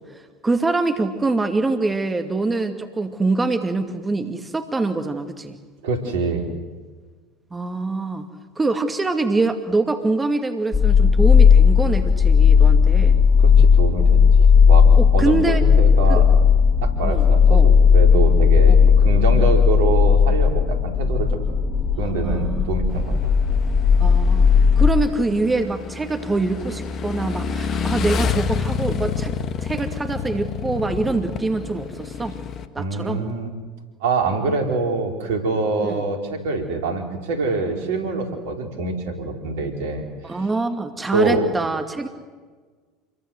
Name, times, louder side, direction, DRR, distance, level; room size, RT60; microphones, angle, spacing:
voice 1, 0.1-5.6 7.5-8.3 8.6-13.2 15.0-15.6 16.1-16.2 17.0-17.7 18.8-18.9 21.9-22.7 24.0-24.5 24.8-29.3 29.6-32.4 32.7-33.2 35.8-36.0 40.2-42.1, right 3 dB, 15° right, 6 dB, 2.3 m, -24 dB
voice 2, 5.8-6.5 13.4-14.9 15.1-16.3 16.8-21.4 22.0-23.2 32.8-33.5 34.0-40.4 41.1-41.5, right 3 dB, 70° right, 4 dB, 4.7 m, -25 dB
sound 1, 10.7-24.9, left 6 dB, 25° left, 4.8 m, -15 dB
Motorcycle / Engine, 22.9-32.7, left 6 dB, 40° left, 1.9 m, -29 dB
28.5 x 22.5 x 8.1 m, 1.4 s
hypercardioid pair, 75°, 0 cm